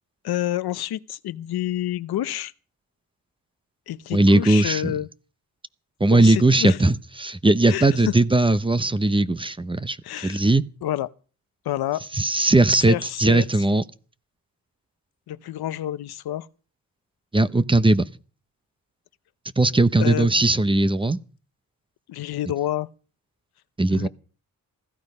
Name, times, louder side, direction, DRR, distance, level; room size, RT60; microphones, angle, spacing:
voice 1, 0.2-2.5 3.9-5.1 6.1-6.8 7.7-8.1 10.0-10.4 10.8-11.1 11.6-12.0 12.7-13.5 15.3-16.5 20.0-20.5 22.1-22.9 23.9-24.1, left 13 dB, 90° left, 0.8 m, -28 dB
voice 2, 4.1-4.9 6.0-10.0 10.2-10.6 12.1-13.8 17.3-18.1 19.6-21.2 23.8-24.1, right 2 dB, 15° right, 0.8 m, -19 dB
15.5 x 14.0 x 5.4 m
cardioid pair, 95°, 36 cm